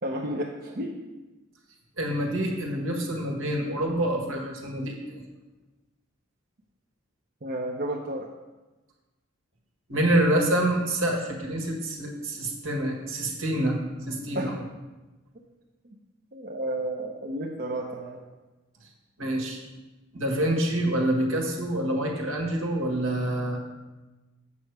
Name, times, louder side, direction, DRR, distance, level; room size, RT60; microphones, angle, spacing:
voice 1, 0.0-1.0 7.4-8.3 14.3-14.5 15.8-16.0 16.3-18.2, right 1 dB, 45° right, -1 dB, 0.7 m, -32 dB
voice 2, 2.0-5.2 9.9-14.6 19.2-19.6 20.1-23.7, right 1 dB, 75° right, 1 dB, 1.6 m, -27 dB
8.3 x 6.5 x 4.6 m, 1.1 s
head